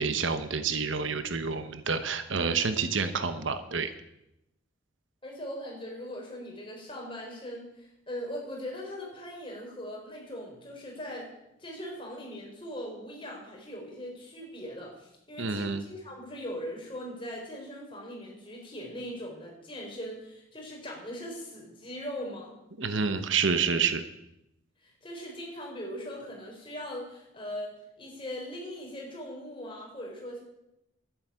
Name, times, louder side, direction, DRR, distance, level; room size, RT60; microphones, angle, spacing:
voice 1, 0.0-3.9 15.4-15.8 22.8-24.0, right 5 dB, 70° right, 10 dB, 1.1 m, -28 dB
voice 2, 5.2-11.3 11.6-22.5 24.8-30.4, equal, 25° left, -1 dB, 4.6 m, -40 dB
11.5 x 9.6 x 8.7 m, 0.86 s
head